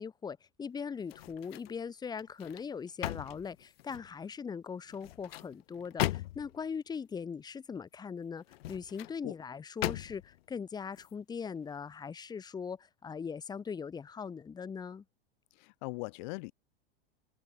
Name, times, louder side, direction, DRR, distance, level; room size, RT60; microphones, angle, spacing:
voice 1, 0.0-15.0, left 6 dB, 15° left, 1.7 m, -40 dB
sound 1, 1.0-1.8 2.2-4.1 4.9-6.6 8.4-9.2 9.8-10.4 10.9-11.1, left 16 dB, 85° left, 0.5 m, -38 dB
voice 2, 15.6-16.5, left 28 dB, 50° left, 1.4 m, -40 dB
supercardioid pair, 140°, 30 cm